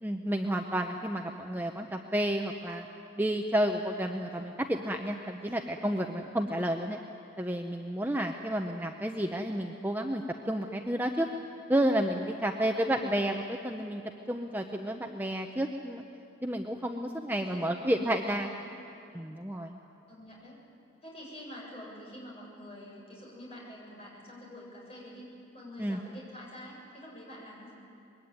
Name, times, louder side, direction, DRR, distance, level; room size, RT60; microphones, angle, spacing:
voice 1, 0.0-2.9 3.2-7.0 7.4-11.3 11.7-14.0 14.3-16.0 16.4-18.5 19.1-19.8 25.8-26.0, right 1 dB, 10° right, 3 dB, 0.8 m, -31 dB
voice 2, 12.4-13.1 16.9-17.9 18.4-18.8 20.1-20.6 21.0-27.7, left 1 dB, 30° left, -3 dB, 7.3 m, -47 dB
24.5 x 22.0 x 9.7 m, 2.7 s
head